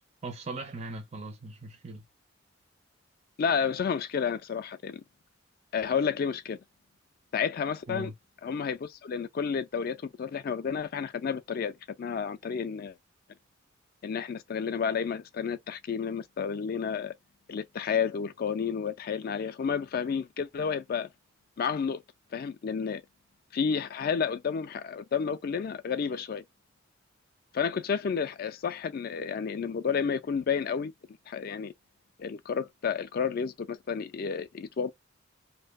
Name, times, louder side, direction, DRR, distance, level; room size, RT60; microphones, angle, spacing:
voice 1, 0.2-2.0 7.9-8.1, right 2 dB, 30° right, 0.4 m, -39 dB
voice 2, 3.4-5.0 5.7-6.6 7.3-8.1 8.4-12.9 14.0-17.1 17.5-21.1 21.6-22.0 22.3-23.0 23.5-26.4 27.5-30.9 31.3-31.7 32.2-34.9, left 6 dB, 45° left, 0.3 m, -31 dB
2.7 x 2.1 x 2.2 m
head